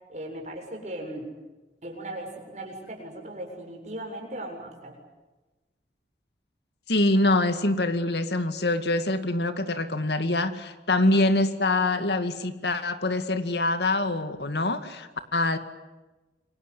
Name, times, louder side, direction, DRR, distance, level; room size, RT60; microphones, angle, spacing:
voice 1, 0.1-1.3 1.8-5.0, right 1 dB, 40° right, 2 dB, 7.4 m, -38 dB
voice 2, 6.9-15.6, left 2 dB, 75° left, 10 dB, 2.2 m, -25 dB
28.0 x 25.0 x 8.4 m, 1.1 s
head